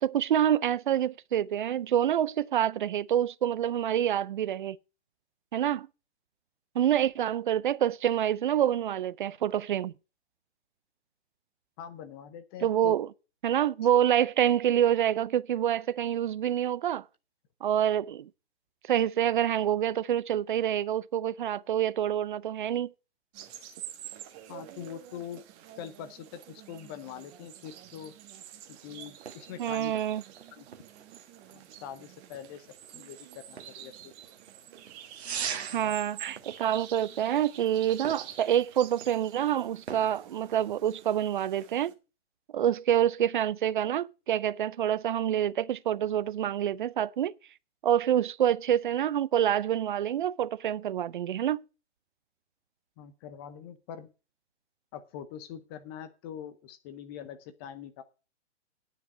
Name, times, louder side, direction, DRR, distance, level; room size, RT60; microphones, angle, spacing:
voice 1, 0.0-4.8 5.5-5.9 6.7-9.9 12.6-13.1 13.4-17.0 17.6-18.3 18.9-22.9 29.6-30.2 35.7-41.9 42.5-47.3 47.8-51.6, right 10 dB, 45° right, 0.5 m, -27 dB
voice 2, 11.8-13.0 24.5-25.4 25.8-28.1 28.8-30.0 30.5-30.7 31.5-32.7 32.9-34.1 35.7-36.0 53.0-54.1 54.9-58.0, left 9 dB, 20° left, 0.6 m, -43 dB
sound 1, 23.3-41.9, right 11 dB, 25° right, 1.3 m, -48 dB
sound 2, 28.6-41.2, right 7 dB, 60° right, 1.5 m, -44 dB
9.7 x 5.8 x 7.7 m
figure-of-eight pair, 130°, 35 cm